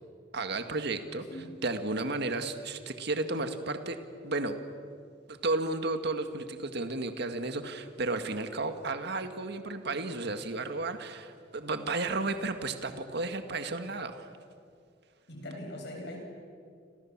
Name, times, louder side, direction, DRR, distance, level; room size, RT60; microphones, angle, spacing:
voice 1, 0.3-1.2 1.6-4.0 4.2-4.6 5.3-14.3, right 2 dB, 60° right, 7 dB, 1.9 m, -33 dB
voice 2, 15.3-16.2, left 1 dB, 65° left, 2 dB, 7.3 m, -41 dB
28.5 x 28.0 x 7.4 m, 2.3 s
head